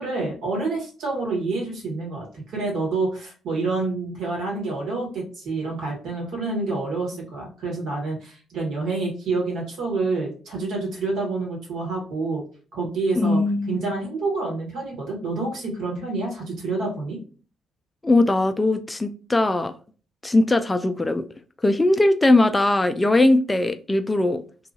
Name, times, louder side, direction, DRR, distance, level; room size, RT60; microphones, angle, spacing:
voice 1, 0.0-12.4 12.7-13.4 13.7-17.2, right 3 dB, 70° right, 1.3 m, -28 dB
voice 2, 13.2-13.9 18.0-19.7 20.2-21.2 21.6-24.4, left 2 dB, 20° left, 0.3 m, -20 dB
2.7 x 2.3 x 2.6 m
hypercardioid pair, 50°, 0 cm